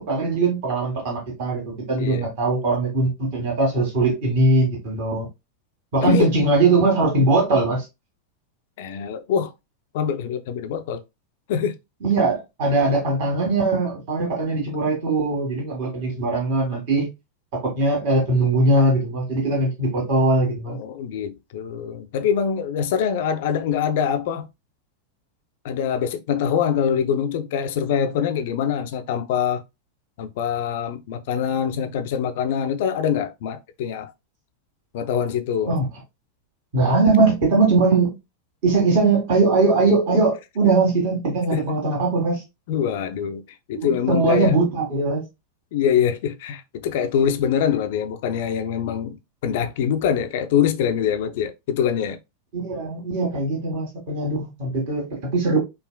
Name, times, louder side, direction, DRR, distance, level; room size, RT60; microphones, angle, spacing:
voice 1, 0.0-5.3 5.9-7.8 12.0-17.1 17.6-20.8 35.7-35.9 36.7-38.1 38.6-42.4 43.7-45.3 52.5-55.6, right 3 dB, 45° right, 1.5 m, -20 dB
voice 2, 2.0-2.3 6.0-6.3 8.8-9.5 9.9-11.0 11.5-11.7 20.7-24.5 25.6-29.6 30.2-34.1 34.9-35.7 41.5-41.6 42.7-43.4 43.7-44.5 45.7-49.2 49.4-52.2, left 8 dB, 50° left, 0.5 m, -24 dB
4.9 x 2.4 x 2.2 m
figure-of-eight pair, 90°, 0 cm